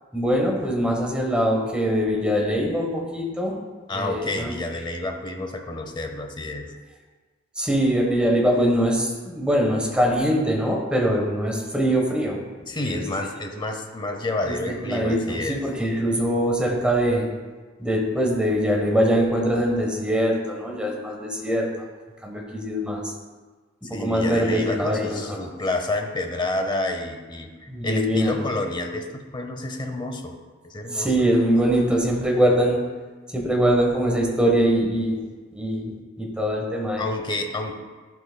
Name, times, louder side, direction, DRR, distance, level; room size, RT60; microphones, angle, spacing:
voice 1, 0.1-3.6 3.9-4.5 7.6-12.4 12.9-13.0 14.5-14.6 14.8-17.3 17.8-21.7 22.2-23.1 23.8-25.4 27.7-28.3 30.9-32.8 33.3-35.2 35.5-37.0, equal, 5° right, -1 dB, 1.1 m, -22 dB
voice 2, 3.9-6.7 12.7-15.6 23.9-30.4 30.6-31.3 37.0-37.7, left 2 dB, 25° left, 4 dB, 0.7 m, -29 dB
11.0 x 5.9 x 2.2 m, 1.4 s
head